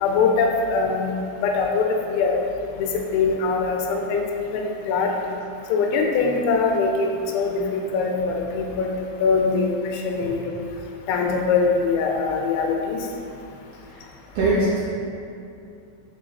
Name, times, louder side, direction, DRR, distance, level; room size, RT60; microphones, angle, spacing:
voice 1, 0.0-1.1 1.4-2.4 2.8-4.2 4.5-5.4 5.7-8.9 9.2-10.4 11.1-13.0, left 4 dB, 85° left, 1 dB, 3.0 m, -22 dB
voice 2, 14.3-14.8, right 2 dB, 70° right, -10 dB, 2.3 m, -23 dB
6.9 x 5.0 x 3.8 m, 2.6 s
omnidirectional pair, 5.5 m